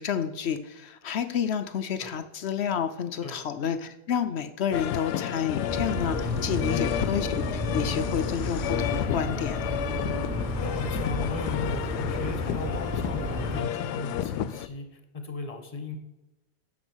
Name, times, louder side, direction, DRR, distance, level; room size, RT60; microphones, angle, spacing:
voice 1, 0.0-9.6, left 8 dB, 60° left, 10 dB, 0.7 m, -30 dB
sound 1, 4.7-14.7, left 11 dB, 85° left, 1.2 m, -32 dB
sound 2, 5.7-13.6, left 1 dB, 25° right, 3.6 m, -31 dB
voice 2, 10.6-16.0, left 4 dB, 25° left, 7 dB, 1.2 m, -36 dB
10.5 x 7.0 x 6.2 m, 0.98 s
omnidirectional pair, 1.7 m